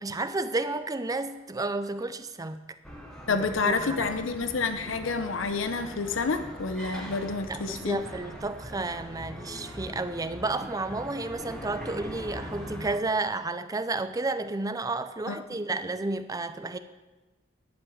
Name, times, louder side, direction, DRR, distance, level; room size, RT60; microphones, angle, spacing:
voice 1, 0.0-2.6 3.6-4.1 7.5-16.8, right 2 dB, 20° right, 10 dB, 0.5 m, -31 dB
sound 1, 2.8-13.0, equal, 5° left, 1.5 m, -41 dB
voice 2, 3.3-8.0 15.3-15.4, left 4 dB, 75° left, 9 dB, 0.7 m, -29 dB
11.0 x 6.0 x 7.6 m, 1.2 s
head